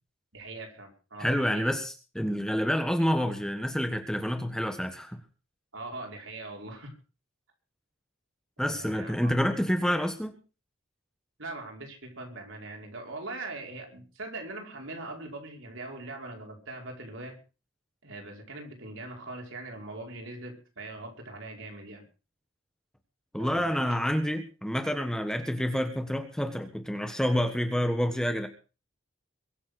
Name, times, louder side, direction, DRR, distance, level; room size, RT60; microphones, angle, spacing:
voice 1, 0.3-1.7 5.7-6.9 8.6-9.4 11.4-17.4 18.0-22.0 23.4-24.0, right 2 dB, 70° right, 1 dB, 5.2 m, -41 dB
voice 2, 1.2-5.2 8.6-10.4 23.3-28.5, equal, 5° left, 6 dB, 1.4 m, -28 dB
22.5 x 7.8 x 6.3 m, 0.35 s
head